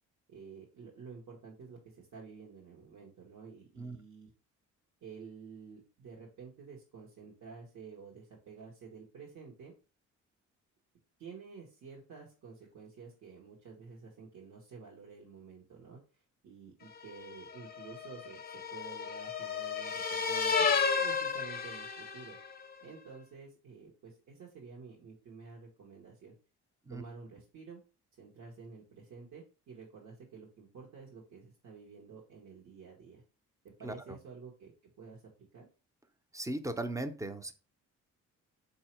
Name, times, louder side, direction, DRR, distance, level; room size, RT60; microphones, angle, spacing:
voice 1, 0.3-4.3 5.0-9.7 11.2-20.7 21.0-22.4 22.8-26.3 26.9-27.8 28.2-33.2 33.6-35.7, right 5 dB, 65° right, -3 dB, 1.3 m, -51 dB
sound 1, 17.1-22.5, left 5 dB, 30° left, 0.7 m, -33 dB
voice 2, 33.8-34.2 36.3-37.5, right 2 dB, 10° right, 9 dB, 0.5 m, -37 dB
4.2 x 2.8 x 4.4 m, 0.33 s
cardioid pair, 90°, 30 cm